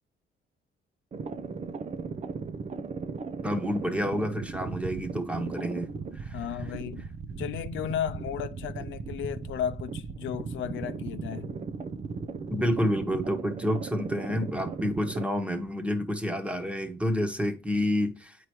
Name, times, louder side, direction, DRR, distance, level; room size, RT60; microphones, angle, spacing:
sound 1, 1.1-15.2, right 5 dB, 35° right, 0.5 m, -37 dB
voice 1, 3.4-5.9 6.1-6.4 12.5-18.4, equal, 5° right, 1.2 m, -29 dB
voice 2, 6.3-7.0 7.4-11.6, left 9 dB, 75° left, 0.5 m, -34 dB
8.3 x 4.6 x 2.9 m
cardioid pair, 90°, 20 cm